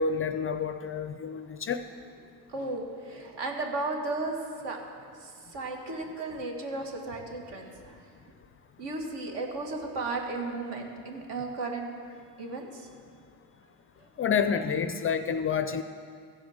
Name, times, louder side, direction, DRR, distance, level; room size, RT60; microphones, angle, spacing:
voice 1, 0.0-1.8 14.2-15.8, left 6 dB, 30° left, 10 dB, 0.4 m, -28 dB
voice 2, 2.5-8.1 8.8-12.1 12.4-12.9 14.0-14.1, right 3 dB, 65° right, 2 dB, 1.8 m, -35 dB
15.0 x 5.1 x 6.4 m, 2.2 s
supercardioid pair, 80°, 45 cm